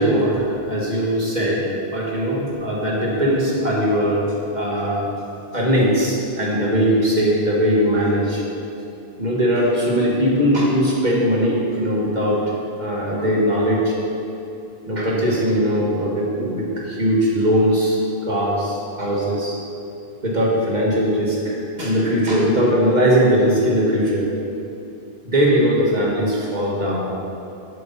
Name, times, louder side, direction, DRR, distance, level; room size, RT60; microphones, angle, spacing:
voice 1, 0.0-4.3 4.5-5.1 5.5-8.4 9.2-12.4 12.8-13.9 14.9-19.6 20.2-24.3 25.3-27.1, equal, 45° right, -4 dB, 2.0 m, -20 dB
10.5 x 7.8 x 4.3 m, 2.7 s
omnidirectional pair, 1.0 m